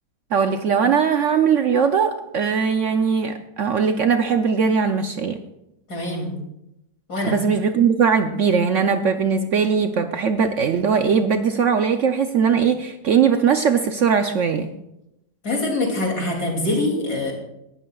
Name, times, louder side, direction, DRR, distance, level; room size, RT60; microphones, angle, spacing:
voice 1, 0.3-5.4 7.2-14.7, right 6 dB, 70° right, 7 dB, 0.7 m, -20 dB
voice 2, 5.9-6.4 7.1-7.4 15.4-17.3, left 2 dB, 55° left, 0 dB, 3.2 m, -24 dB
18.0 x 12.0 x 2.3 m, 0.85 s
omnidirectional pair, 2.0 m